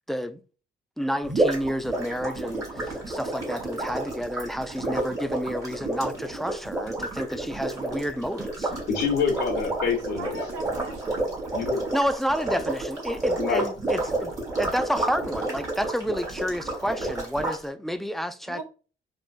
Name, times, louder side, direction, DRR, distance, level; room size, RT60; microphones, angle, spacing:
voice 1, 0.1-0.4 1.0-8.7 11.9-14.3 14.6-18.6, equal, ahead, 0.3 m, -30 dB
sound 1, 1.2-17.6, right 2 dB, 15° right, 1.6 m, -30 dB
voice 2, 8.9-10.4 11.5-11.8 13.4-13.6, left 5 dB, 75° left, 1.1 m, -26 dB
voice 3, 10.2-11.4 18.5-18.6, right 3 dB, 90° right, 1.0 m, -39 dB
3.7 x 2.5 x 2.4 m
cardioid pair, 90°, 20 cm